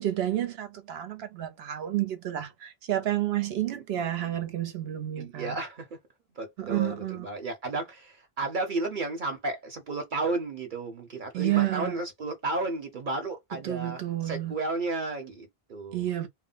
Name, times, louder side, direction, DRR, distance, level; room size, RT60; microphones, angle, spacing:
voice 1, 0.0-5.6 6.6-7.3 11.3-12.0 13.6-14.5 15.9-16.3, right 13 dB, 85° right, 1.0 m, -30 dB
voice 2, 5.2-5.9 6.4-16.1, right 2 dB, 55° right, 0.9 m, -33 dB
2.2 x 2.1 x 3.7 m
omnidirectional pair, 1.0 m